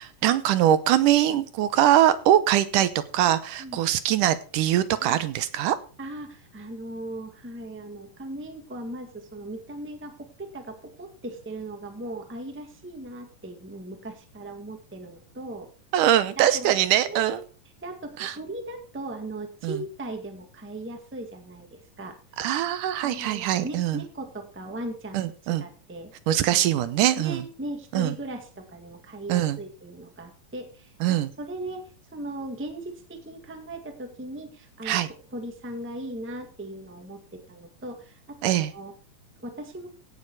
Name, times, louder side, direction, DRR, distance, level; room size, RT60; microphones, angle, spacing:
voice 1, 0.0-5.8 15.9-17.4 18.2-18.4 19.6-19.8 22.4-24.0 25.1-25.6 26.3-27.4 27.9-28.1 29.3-29.6 31.0-31.3 34.9-35.1 38.4-38.7, right 12 dB, 80° right, 13 dB, 2.3 m, -22 dB
voice 2, 6.0-15.7 16.4-16.7 17.0-17.4 17.8-22.2 23.0-25.2 25.5-26.1 26.5-26.8 27.1-30.9 31.4-35.0 35.3-38.9 39.4-39.9, right 1 dB, 5° right, 5 dB, 1.1 m, -38 dB
17.0 x 6.9 x 4.7 m, 0.38 s
omnidirectional pair, 3.8 m